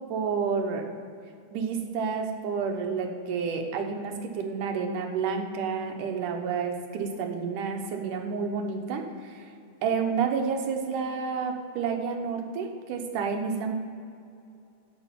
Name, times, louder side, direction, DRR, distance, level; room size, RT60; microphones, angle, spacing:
voice 1, 0.1-0.8 1.5-9.5 9.8-13.7, right 5 dB, 80° right, 3 dB, 2.7 m, -30 dB
15.5 x 5.3 x 7.5 m, 2.5 s
omnidirectional pair, 3.6 m